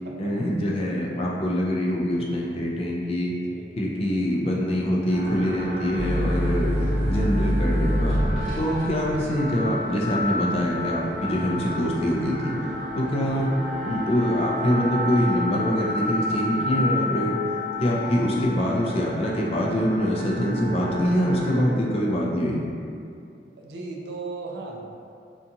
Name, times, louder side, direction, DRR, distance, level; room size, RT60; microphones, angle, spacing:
voice 1, 0.2-3.3 3.8-6.7 7.1-8.2 8.6-12.6 13.0-13.5 13.8-17.4 17.8-22.6, equal, 35° left, -3 dB, 0.3 m, -24 dB
voice 2, 3.4-3.7 13.1-13.4 23.6-24.8, right 3 dB, 70° right, -1 dB, 0.4 m, -37 dB
sound 1, 5.1-21.6, left 1 dB, 85° right, 1.1 m, -31 dB
sound 2, 6.0-13.2 13.7-14.4, equal, ahead, 0.6 m, -26 dB
2.7 x 2.3 x 2.6 m, 2.4 s
head